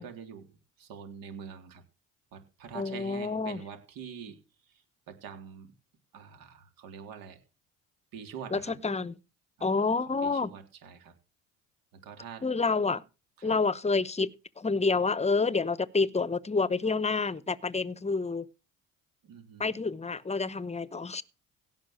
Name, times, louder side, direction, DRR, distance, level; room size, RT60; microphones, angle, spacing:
voice 1, 0.0-1.8 2.3-5.7 6.1-7.4 8.1-8.7 9.6-9.7 10.0-11.1 11.9-12.5 13.4-13.6 19.2-19.8, right 7 dB, 65° right, 3.7 m, -45 dB
voice 2, 2.7-3.6 8.5-9.1 9.6-10.5 12.4-13.0 13.4-14.3 14.6-18.5 19.6-21.2, left 4 dB, 20° left, 0.9 m, -28 dB
17.0 x 5.6 x 6.5 m
hypercardioid pair, 65°, 37 cm